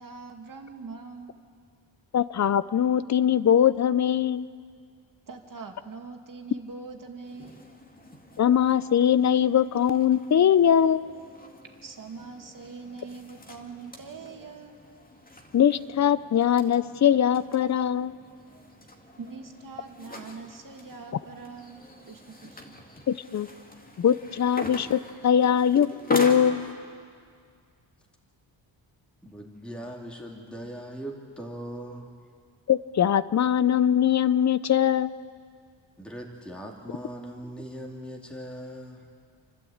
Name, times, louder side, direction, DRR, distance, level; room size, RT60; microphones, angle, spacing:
voice 1, 0.0-1.4 5.3-7.6 11.8-14.8 19.2-22.8, right 4 dB, 45° right, 3 dB, 2.3 m, -43 dB
voice 2, 2.1-4.5 8.4-11.1 15.5-18.1 23.1-23.5 24.0-26.7 32.7-35.1, left 9 dB, 35° left, 17 dB, 0.6 m, -22 dB
sound 1, 7.2-26.7, left 1 dB, 20° left, 2.2 m, -42 dB
voice 3, 29.2-32.1 36.0-39.1, right 1 dB, ahead, -1 dB, 2.5 m, -40 dB
29.0 x 12.0 x 8.7 m, 2.1 s
cardioid pair, 110°, 46 cm